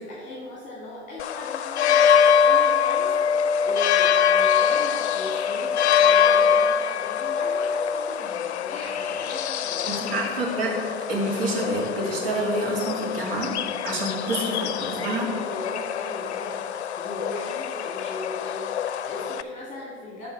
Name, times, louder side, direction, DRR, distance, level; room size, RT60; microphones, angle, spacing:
voice 1, 0.0-10.8 14.5-16.6 17.0-20.3, left 1 dB, 20° left, -4 dB, 2.1 m, -38 dB
sound 1, 1.2-19.4, left 7 dB, 75° left, 0.5 m, -24 dB
voice 2, 9.9-10.8 11.1-13.5 13.8-15.3, right 1 dB, 60° right, -2 dB, 2.7 m, -27 dB
12.0 x 4.1 x 6.2 m, 2.1 s
hypercardioid pair, 95°, 33 cm